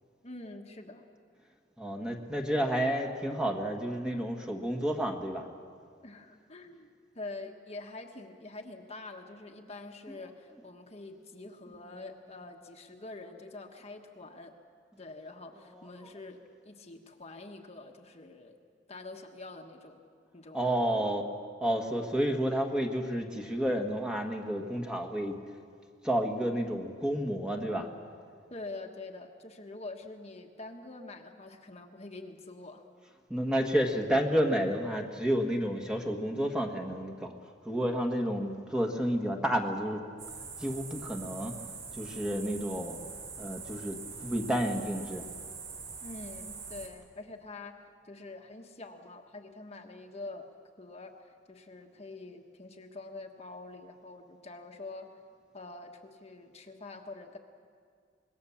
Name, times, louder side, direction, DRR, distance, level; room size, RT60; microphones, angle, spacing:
voice 1, 0.2-1.1 6.0-6.9 7.1-14.5 15.0-18.6 18.9-20.0 20.3-21.2 28.5-32.8 46.0-50.5 50.8-55.1 55.5-57.4, left 2 dB, 35° left, 3 dB, 1.4 m, -45 dB
voice 2, 1.8-5.5 10.1-10.2 10.5-10.6 15.5-16.1 20.5-21.2 21.6-25.3 26.0-27.9 33.3-40.0 40.6-41.6 41.9-43.0 43.4-45.2, equal, 5° right, 3 dB, 1.6 m, -31 dB
sound 1, 40.2-46.9, right 5 dB, 75° right, 3.8 m, -43 dB
25.5 x 20.5 x 7.2 m, 2.1 s
head